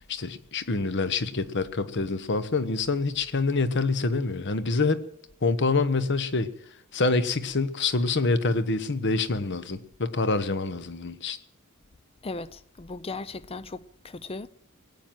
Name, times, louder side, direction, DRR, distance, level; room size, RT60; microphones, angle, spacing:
voice 1, 0.1-5.0 5.4-6.5 6.9-11.4, left 3 dB, 55° left, 1.1 m, -26 dB
voice 2, 12.2-14.5, left 3 dB, 25° left, 0.5 m, -37 dB
20.0 x 9.0 x 7.7 m
head